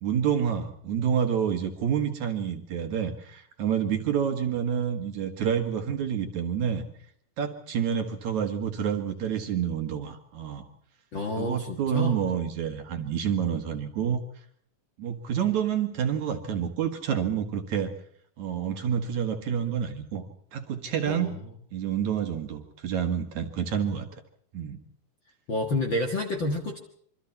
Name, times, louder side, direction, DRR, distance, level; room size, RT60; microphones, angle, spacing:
voice 1, 0.0-6.8 7.4-10.6 11.4-14.2 15.0-17.9 18.4-20.3 20.5-21.4 21.7-24.1 24.5-24.8, right 8 dB, 60° right, 6 dB, 2.7 m, -28 dB
voice 2, 11.1-12.2 21.1-21.4 25.5-26.8, left 2 dB, 45° left, 2 dB, 1.7 m, -29 dB
26.5 x 24.5 x 4.3 m, 0.63 s
omnidirectional pair, 4.2 m